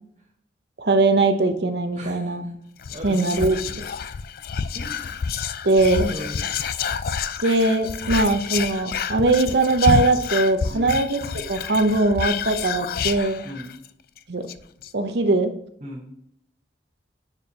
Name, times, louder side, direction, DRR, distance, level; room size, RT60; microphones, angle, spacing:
voice 1, 0.8-2.4 3.0-3.6 5.6-6.1 7.4-13.4 14.3-14.4 14.9-15.5, right 2 dB, 65° right, 8 dB, 0.8 m, -20 dB
voice 2, 1.9-2.5 2.9-3.9 4.7-5.2 6.1-6.5 10.7-11.0 13.4-13.8 15.8-16.1, equal, 35° right, -3 dB, 1.2 m, -38 dB
Whispering, 2.8-13.9 14.2-14.3 14.5-14.9, left 6 dB, 50° left, 0.3 m, -28 dB
9.7 x 4.6 x 2.9 m, 0.74 s
head